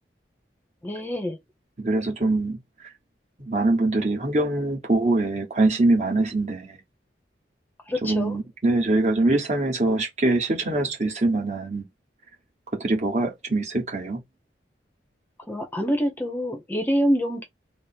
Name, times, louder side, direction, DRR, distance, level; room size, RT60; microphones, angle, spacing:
voice 1, 0.8-1.4 7.9-8.4 15.5-17.4, equal, 10° left, 0.7 m, -26 dB
voice 2, 1.8-2.6 3.4-6.8 8.0-11.9 12.8-14.2, right 2 dB, 40° right, 1.1 m, -23 dB
3.6 x 2.0 x 3.9 m
head